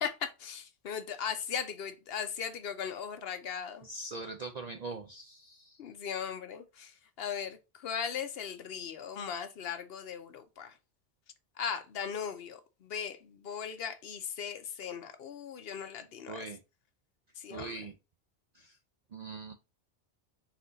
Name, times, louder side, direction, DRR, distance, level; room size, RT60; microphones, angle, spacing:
voice 1, 0.0-3.9 5.8-10.8 11.6-16.5 17.4-17.7, left 7 dB, 65° left, 0.8 m, -38 dB
voice 2, 3.8-5.8 16.3-16.6 17.5-17.9 18.5-18.8 19.1-19.5, right 3 dB, 60° right, 0.4 m, -42 dB
4.2 x 2.6 x 3.8 m
omnidirectional pair, 1.2 m